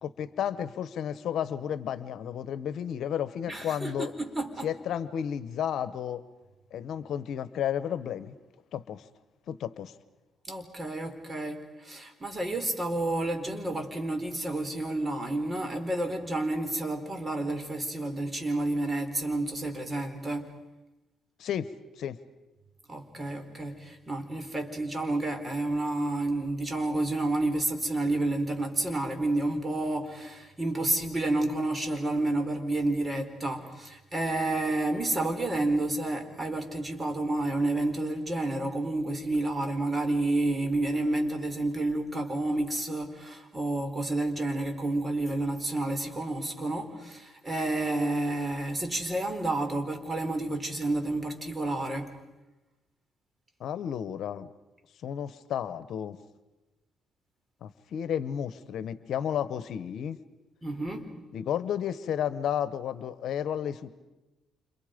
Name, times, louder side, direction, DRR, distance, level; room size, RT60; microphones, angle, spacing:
voice 1, 0.0-4.1 4.6-6.2 6.7-8.4 8.7-9.0 9.5-9.9 21.4-21.7 22.0-22.2 53.6-54.5 55.0-56.2 57.6-60.2 61.3-63.9, left 9 dB, 70° left, 14 dB, 1.1 m, -32 dB
voice 2, 3.5-4.7 10.5-20.5 22.9-52.1 60.6-61.1, right 2 dB, 25° right, 6 dB, 4.1 m, -30 dB
29.5 x 27.5 x 5.2 m, 1.1 s
cardioid pair, 90°, 0 cm